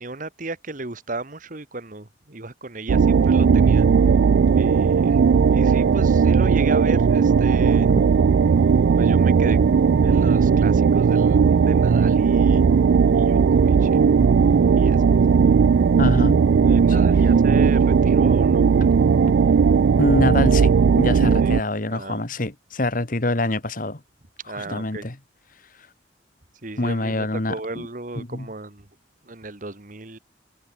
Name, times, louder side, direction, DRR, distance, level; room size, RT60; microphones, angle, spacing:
voice 1, 0.0-3.9 4.5-5.2 5.5-8.0 9.0-9.6 10.0-12.6 13.1-14.1 14.7-15.2 16.6-18.7 21.4-21.5 21.9-22.2 24.5-25.1 26.6-28.9 29.2-30.2, right 2 dB, 45° right, 1.7 m, -34 dB
sound 1, 2.9-21.6, right 6 dB, 75° right, 0.4 m, -17 dB
voice 2, 16.0-16.4 16.9-17.0 20.0-24.0 24.5-25.2 26.8-27.9 28.1-28.5, left 2 dB, 45° left, 1.7 m, -25 dB
head